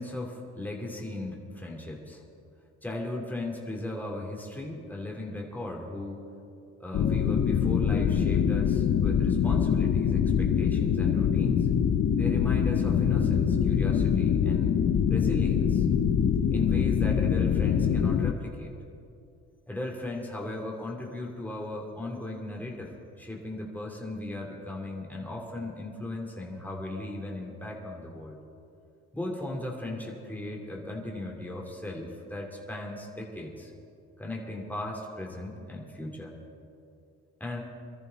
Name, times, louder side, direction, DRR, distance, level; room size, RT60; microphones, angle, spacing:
voice 1, 0.0-2.2 2.8-6.2 6.8-11.7 12.2-14.8 15.1-15.9 16.5-18.8 19.7-22.9 23.2-28.4 29.1-33.7 34.2-36.4 37.4-37.6, left 1 dB, 5° left, -1 dB, 2.9 m, -37 dB
sound 1, 6.9-18.3, left 8 dB, 65° left, 0.9 m, -24 dB
23.5 x 13.5 x 4.1 m, 2.5 s
cardioid pair, 90°, 30 cm